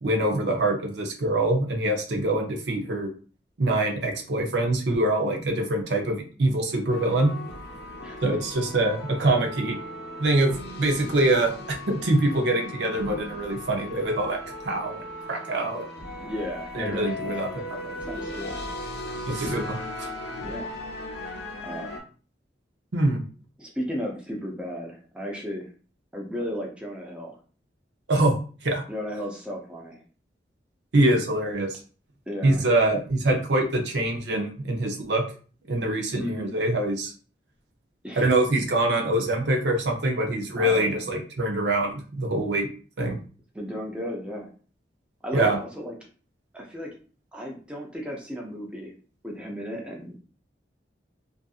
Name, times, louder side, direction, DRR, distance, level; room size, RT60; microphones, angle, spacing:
voice 1, 0.0-3.1 3.6-7.3 8.2-9.8 10.2-14.4 14.6-15.0 15.3-15.9 16.7-17.5 19.3-20.1 22.9-23.2 28.1-28.4 28.6-28.8 30.9-31.8 32.4-35.2 35.7-37.1 38.2-42.7 43.0-43.2 45.3-45.6, right 1 dB, 80° right, 2 dB, 0.6 m, -24 dB
sound 1, 6.9-22.0, left 1 dB, 70° left, 0.6 m, -37 dB
voice 2, 16.2-17.7 18.1-18.6 20.4-20.7 21.6-22.0 23.6-25.7 26.1-27.4 28.9-30.0 32.3-32.7 36.2-36.6 38.0-38.3 40.6-41.0 43.5-44.5 45.2-46.0 46.5-47.0 47.3-48.9 49.2-50.2, equal, 5° right, -1 dB, 0.5 m, -34 dB
2.6 x 2.5 x 2.3 m, 0.39 s
head